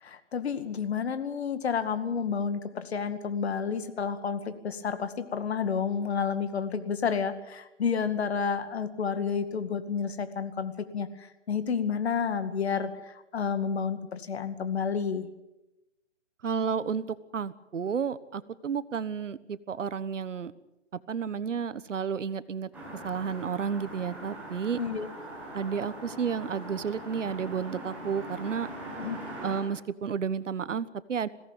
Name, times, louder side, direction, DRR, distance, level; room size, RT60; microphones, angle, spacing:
voice 1, 0.0-15.3 24.8-25.1 29.0-29.2, left 6 dB, 60° left, 10 dB, 2.2 m, -30 dB
voice 2, 16.4-20.5 20.9-22.7 23.0-24.8 25.5-28.7 29.4-31.3, right 6 dB, 85° right, 16 dB, 1.3 m, -31 dB
sound 1, 22.7-29.6, right 1 dB, 5° right, 5.9 m, -41 dB
21.5 x 17.0 x 9.0 m, 0.97 s
hypercardioid pair, 165°, 36 cm